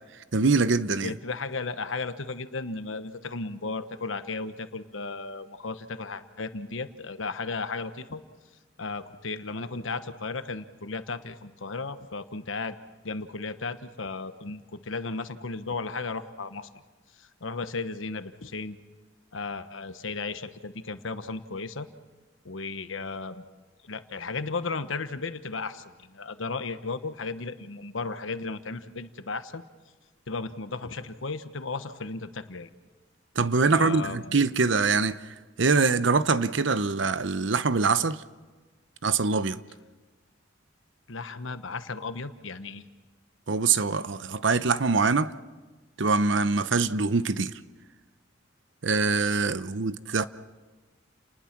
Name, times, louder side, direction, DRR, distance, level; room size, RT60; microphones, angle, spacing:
voice 1, 0.3-1.1 33.4-35.2 35.6-38.2 39.0-39.6 43.5-45.3 46.0-47.5 48.8-50.3, right 4 dB, 70° right, 0.8 m, -24 dB
voice 2, 1.0-8.2 8.8-12.8 13.0-16.7 17.2-18.8 19.3-21.9 22.4-23.4 23.8-29.6 30.3-32.7 33.7-34.4 41.1-42.8, left 3 dB, 85° left, 1.2 m, -35 dB
30.0 x 20.0 x 6.0 m
head